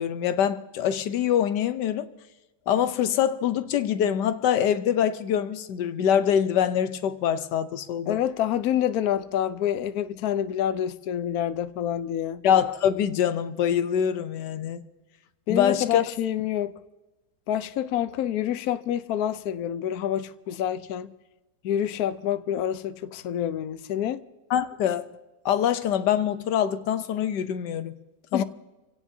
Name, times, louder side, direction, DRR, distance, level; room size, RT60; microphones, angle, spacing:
voice 1, 0.0-2.1 2.7-8.2 12.4-14.8 15.5-16.0 24.5-25.1 25.4-27.9 28.3-28.4, left 9 dB, 85° left, 1.4 m, -24 dB
voice 2, 8.1-12.4 15.5-16.7 17.5-21.1 21.6-24.2 28.3-28.4, left 10 dB, 70° left, 1.1 m, -27 dB
27.0 x 17.0 x 2.7 m
omnidirectional pair, 1.8 m